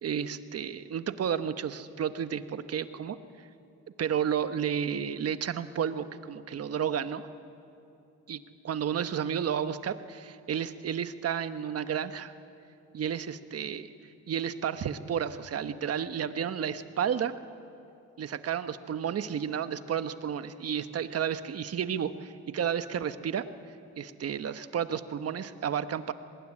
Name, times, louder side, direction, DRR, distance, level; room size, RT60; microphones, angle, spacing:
voice 1, 0.0-3.2 4.0-7.3 8.3-12.3 12.9-13.9 14.3-17.3 18.2-23.5 24.0-26.1, right 8 dB, 55° right, 11 dB, 1.2 m, -32 dB
24.0 x 20.0 x 10.0 m, 2.7 s
cardioid pair, 90°, 30 cm